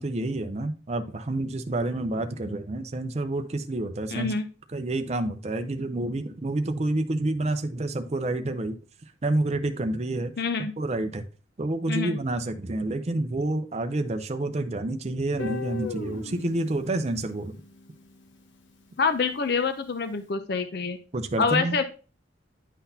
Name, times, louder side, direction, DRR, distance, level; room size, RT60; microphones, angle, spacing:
voice 1, 0.0-4.3 4.7-8.8 9.2-10.3 10.8-11.2 11.6-17.5 21.1-21.8, right 2 dB, 35° right, 7 dB, 0.5 m, -28 dB
voice 2, 4.1-4.5 10.4-10.7 11.9-12.2 19.0-21.0 21.4-21.8, left 5 dB, 55° left, 9 dB, 0.5 m, -26 dB
Guitar, 15.4-18.3, left 3 dB, 75° left, 0.9 m, -38 dB
10.0 x 3.9 x 2.7 m, 0.36 s
head